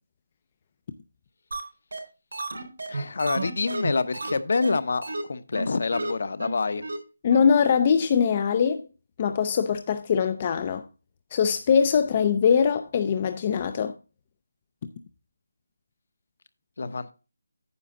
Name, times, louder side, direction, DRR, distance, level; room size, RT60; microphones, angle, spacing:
sound 1, 1.5-1.6 1.9-2.0 2.3-4.3 4.6-4.7 5.0-5.2 5.5-5.6 5.9-6.1 6.4-6.5 6.8-7.0 7.3-7.4 7.7-7.8, right 2 dB, 80° right, 4.1 m, -31 dB
voice 1, 2.9-6.8 16.8-17.1, left 4 dB, 50° left, 0.8 m, -27 dB
voice 2, 7.2-8.8 9.2-10.9 11.3-13.9, left 6 dB, 25° left, 0.4 m, -22 dB
9.6 x 6.9 x 3.6 m
hypercardioid pair, 175°, 0 cm